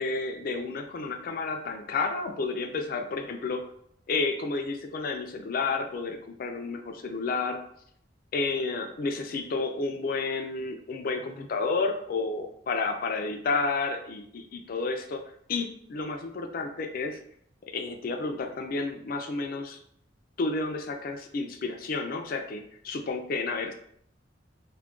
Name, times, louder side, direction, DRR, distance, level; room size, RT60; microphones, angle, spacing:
voice 1, 0.0-3.6 4.1-7.6 8.3-15.2 15.5-17.2 17.7-19.8 20.4-23.7, left 3 dB, 50° left, 5 dB, 0.3 m, -31 dB
2.3 x 2.2 x 3.6 m, 0.66 s
head